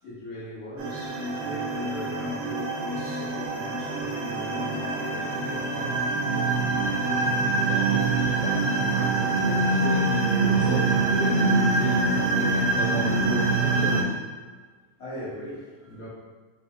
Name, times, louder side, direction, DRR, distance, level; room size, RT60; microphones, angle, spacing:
voice 1, 0.0-6.1 6.3-6.7 15.0-16.1, left 1 dB, 50° left, -8 dB, 1.0 m, -39 dB
sound 1, 0.8-14.0, right 3 dB, 70° right, 1.8 m, -25 dB
voice 2, 7.5-10.1 10.4-14.5, right 4 dB, 85° right, -2 dB, 2.0 m, -33 dB
4.7 x 3.5 x 3.0 m, 1.4 s
omnidirectional pair, 3.3 m